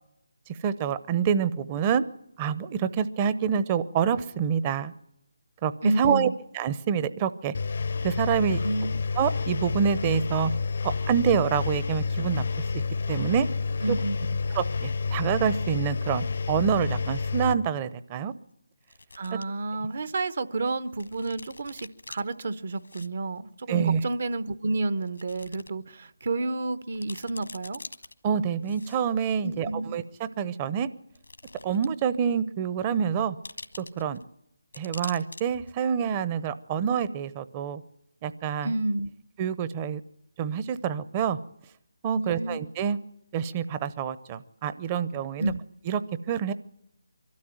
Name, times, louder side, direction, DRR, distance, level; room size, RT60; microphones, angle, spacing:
voice 1, 0.6-2.0 2.4-4.9 5.6-5.7 6.0-6.3 6.5-7.5 8.0-8.6 9.2-10.5 10.8-12.4 13.1-13.5 13.9-14.0 14.5-18.3 23.7-24.0 28.2-30.9 31.6-33.4 33.8-34.2 34.8-37.8 38.2-38.7 39.4-40.0 40.4-41.4 42.0-43.0 43.3-45.5 45.9-46.0 46.3-46.5, right 7 dB, 25° right, 0.8 m, -27 dB
voice 2, 5.8-6.4 8.6-9.0 13.8-14.2 19.2-27.8 29.4-29.9 38.6-39.1 42.1-42.6 45.4-45.6, right 2 dB, 55° right, 1.0 m, -30 dB
Engine, 7.5-17.5, left 4 dB, 55° left, 0.8 m, -29 dB
sound 1, 18.8-19.4 19.9-20.0 21.0-22.2 22.7-23.1 23.4-23.5 24.3-24.4 25.1-25.7 26.1-26.2 26.6-26.7 26.9-28.1 28.6-29.3 30.2-30.3 31.1-32.0 32.3-32.4 33.4-34.2 34.7-35.4 35.7-35.8, left 2 dB, 85° left, 1.6 m, -44 dB
23.5 x 13.0 x 9.2 m
figure-of-eight pair, 155°, 0 cm